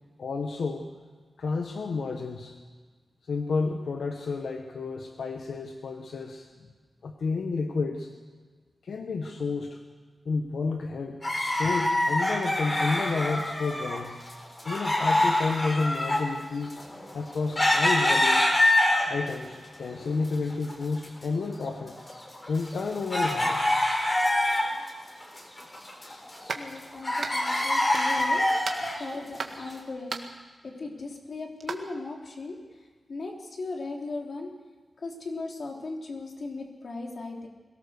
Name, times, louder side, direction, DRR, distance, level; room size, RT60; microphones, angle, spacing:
voice 1, 0.2-0.9 1.4-2.5 3.2-6.5 7.0-8.1 8.8-9.8 10.2-14.2 14.6-16.8 17.1-18.4 19.0-21.9 22.5-23.6 26.0-26.3 28.8-28.9, left 4 dB, 90° left, 4 dB, 1.4 m, -31 dB
sound 1, 11.2-14.0 14.3-19.3 19.8-20.7 21.0-21.1 21.7-24.9 25.2-26.8 27.0-29.0 29.6-29.7, left 1 dB, 25° left, 4.0 m, -25 dB
voice 2, 26.5-30.2 30.6-32.6 33.1-34.5 35.0-37.5, left 3 dB, 55° left, 0 dB, 3.6 m, -37 dB
sound 2, 26.5-26.7 27.2-27.7 27.9-28.4 28.6-29.6 30.1-30.4 31.6-31.8, right 4 dB, 70° right, 1.8 m, -35 dB
22.5 x 18.0 x 6.7 m, 1.4 s
wide cardioid pair, 145°, 0 cm